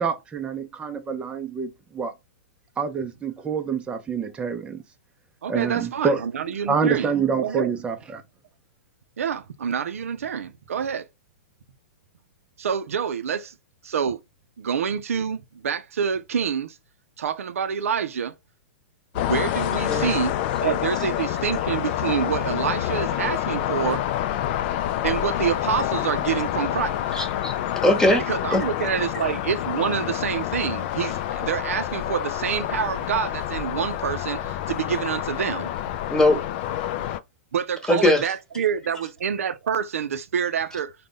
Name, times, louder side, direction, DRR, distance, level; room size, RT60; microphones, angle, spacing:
voice 1, 0.0-2.1 2.8-4.8 5.5-6.2 6.7-8.2, right 5 dB, 15° right, 0.4 m, -26 dB
voice 2, 5.4-7.1 7.4-7.8 9.2-11.1 12.6-13.5 13.8-14.2 14.6-16.8 17.2-18.3 19.1-20.3 20.6-24.0 25.0-27.1 28.3-35.7 37.5-40.9, right 7 dB, 80° right, 0.4 m, -27 dB
sound 1, 19.1-37.2, left 12 dB, 50° left, 0.3 m, -27 dB
voice 3, 27.1-28.2 28.5-28.7 36.1-36.4 37.9-38.2, left 1 dB, 5° left, 1.0 m, -20 dB
3.7 x 2.1 x 3.6 m
hypercardioid pair, 120°, 7 cm